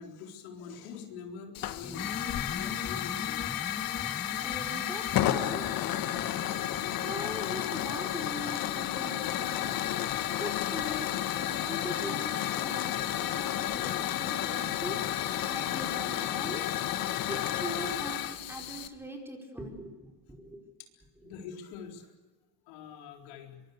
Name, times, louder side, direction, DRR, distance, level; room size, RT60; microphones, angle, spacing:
voice 1, 0.0-2.1 2.5-3.4 7.6-7.7 15.1-15.2 21.2-22.1 22.6-23.6, left 6 dB, 75° left, 2 dB, 4.2 m, -45 dB
Hiss / Fire, 1.5-18.9, left 12 dB, 45° left, 1.5 m, -32 dB
sound 1, 1.8-18.1 18.3-18.4 18.6-19.0, left 5 dB, 15° left, 1.1 m, -45 dB
voice 2, 4.4-5.6 6.0-6.5 7.0-10.1 10.4-16.6 17.3-19.9 20.3-20.6, equal, 5° right, 1 dB, 4.9 m, -41 dB
24.0 x 24.0 x 6.8 m, 1.3 s
cardioid pair, 135°, 47 cm